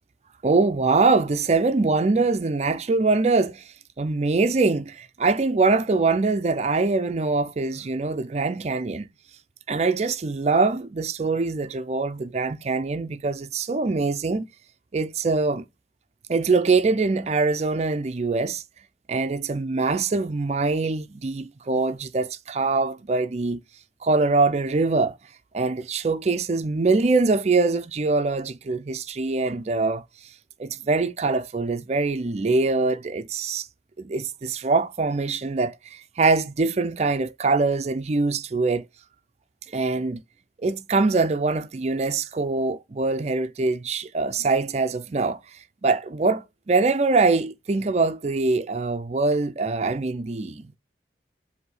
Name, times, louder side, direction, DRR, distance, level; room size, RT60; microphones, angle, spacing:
voice 1, 0.4-3.7 4.0-9.1 9.7-14.5 14.9-15.6 16.3-18.6 19.1-23.6 24.0-25.2 25.5-30.0 30.6-33.7 34.0-38.8 39.7-40.2 40.6-45.4 45.8-50.8, right 3 dB, 40° right, 0.4 m, -23 dB
7.9 x 2.7 x 4.8 m
head